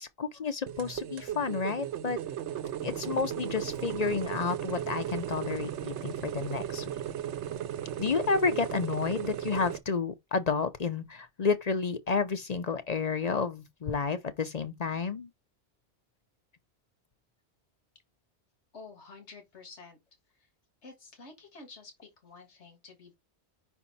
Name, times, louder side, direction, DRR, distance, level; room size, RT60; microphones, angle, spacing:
voice 1, 0.0-2.2 2.8-7.0 8.0-15.3, left 5 dB, 45° left, 0.6 m, -31 dB
sound 1, 0.7-9.8, right 10 dB, 85° right, 1.0 m, -36 dB
voice 2, 18.7-20.0 20.3-20.5 20.8-23.2, left 3 dB, 85° left, 1.9 m, -50 dB
5.4 x 4.4 x 4.0 m
omnidirectional pair, 1.1 m